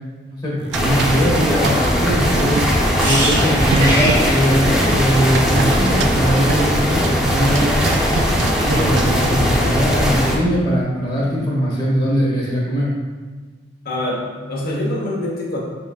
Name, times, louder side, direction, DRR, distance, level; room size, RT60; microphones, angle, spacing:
voice 1, 0.3-2.6 3.0-7.8 8.6-12.9, equal, 25° left, -7 dB, 1.0 m, -20 dB
sound 1, 0.6-1.9 2.4-2.9 3.3-9.4, right 5 dB, 90° right, 0.3 m, -28 dB
sound 2, 0.7-10.4, equal, ahead, 0.7 m, -19 dB
sound 3, 3.0-6.8 7.1-7.3, right 1 dB, 50° right, 1.1 m, -25 dB
voice 2, 13.8-15.6, left 1 dB, 55° left, -3 dB, 1.0 m, -24 dB
5.1 x 3.8 x 2.4 m, 1.4 s
head